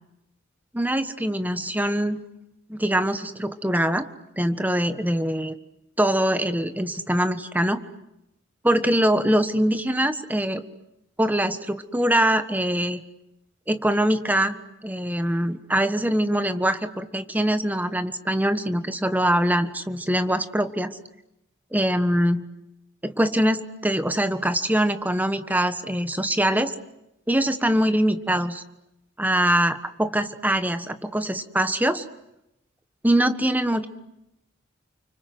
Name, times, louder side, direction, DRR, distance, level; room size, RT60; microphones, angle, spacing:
voice 1, 0.7-2.3 2.7-4.1 4.4-5.5 6.0-7.8 8.6-10.6 11.2-13.0 13.7-21.0 21.7-22.4 23.0-26.7 27.3-28.6 29.2-32.0 33.0-33.9, right 1 dB, 10° right, 10 dB, 1.3 m, -23 dB
29.5 x 25.0 x 8.0 m, 0.86 s
head